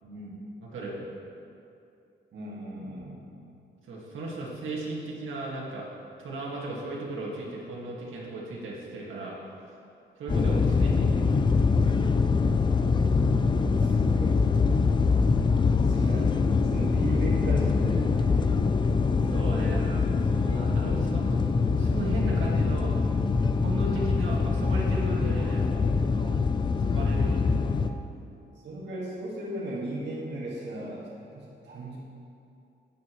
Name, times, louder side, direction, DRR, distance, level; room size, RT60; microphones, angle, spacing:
voice 1, 0.0-0.4 2.3-3.2 13.3-14.6 15.8-19.0 19.6-19.8 28.6-32.0, right 1 dB, 65° right, -6 dB, 1.8 m, -37 dB
voice 2, 0.7-1.0 3.9-5.9 6.2-9.4 10.2-11.6 19.2-23.0 23.6-25.8 26.2-26.4 26.7-27.6, right 2 dB, 85° right, -4 dB, 1.9 m, -36 dB
sound 1, 10.3-27.9, left 4 dB, 25° left, 0.3 m, -24 dB
12.5 x 9.1 x 3.1 m, 2.6 s
wide cardioid pair, 155°, 20 cm